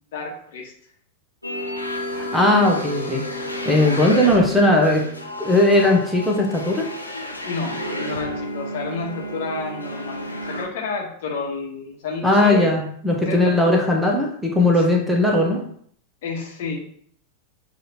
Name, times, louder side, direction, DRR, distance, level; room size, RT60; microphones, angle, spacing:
voice 1, 0.1-0.7 7.4-12.7 13.2-13.7 16.2-16.8, left 4 dB, 55° left, -1 dB, 1.1 m, -30 dB
sound 1, 1.4-10.7, left 1 dB, 85° left, 0.6 m, -31 dB
voice 2, 2.1-3.2 3.7-5.0 5.4-6.9 12.2-15.6, left 1 dB, 5° right, 0 dB, 0.8 m, -18 dB
6.6 x 2.5 x 2.9 m, 0.62 s
figure-of-eight pair, 90°, 0 cm